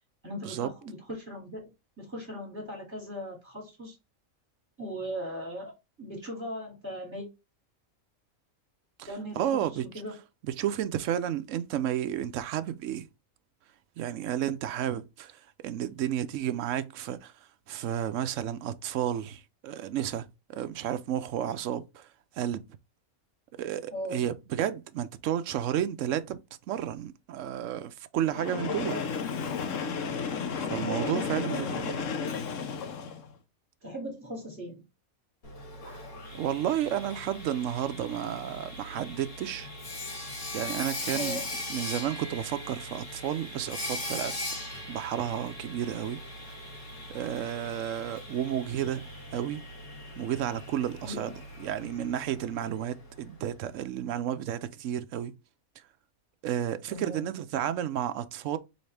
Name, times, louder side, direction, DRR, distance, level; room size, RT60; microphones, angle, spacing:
voice 1, 0.2-1.7 2.0-3.9 4.8-7.3 9.1-10.1 23.9-24.2 28.8-29.0 30.9-32.3 33.8-34.8 35.8-36.0 41.1-41.5 51.0-51.2 56.9-57.4, equal, 10° right, 2.2 m, -39 dB
voice 2, 9.4-9.8 10.4-13.1 14.0-17.3 17.7-22.1 22.4-22.6 23.5-26.4 26.7-29.0 30.6-31.9 36.3-39.7 40.5-41.4 41.7-44.3 44.9-46.5 47.1-49.1 49.3-49.6 50.2-51.3 51.6-55.3 56.4-58.6, right 10 dB, 70° right, 0.9 m, -32 dB
Train, 28.3-33.3, left 5 dB, 65° left, 1.1 m, -33 dB
Sawing, 35.4-53.3, left 1 dB, 80° left, 2.6 m, -40 dB
4.1 x 3.9 x 3.3 m
omnidirectional pair, 1.5 m